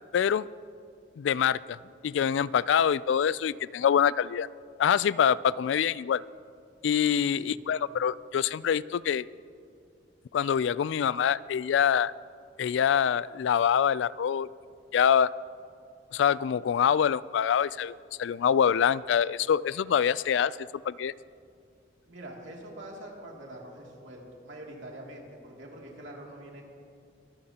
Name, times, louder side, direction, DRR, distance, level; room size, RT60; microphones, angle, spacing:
voice 1, 0.1-0.5 1.2-1.8 2.0-4.5 4.8-6.2 6.8-9.3 10.3-12.1 12.6-14.5 14.9-15.3 16.1-20.5 20.9-21.1, left 8 dB, 80° left, 19 dB, 0.3 m, -25 dB
voice 2, 7.2-7.6 22.1-26.6, right 1 dB, 85° right, -1 dB, 2.6 m, -44 dB
24.0 x 14.5 x 2.9 m, 2.3 s
head